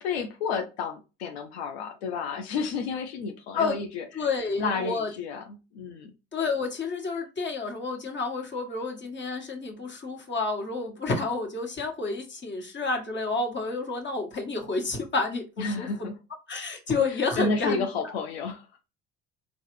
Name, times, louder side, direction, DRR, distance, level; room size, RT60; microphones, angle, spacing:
voice 1, 0.0-4.3 4.6-6.1 15.6-16.2 17.1-18.7, left 4 dB, 90° left, 0.6 m, -31 dB
voice 2, 4.1-5.1 6.3-15.9 16.5-18.1, left 4 dB, 35° left, 1.5 m, -30 dB
3.8 x 2.4 x 3.1 m
hypercardioid pair, 65°, 31 cm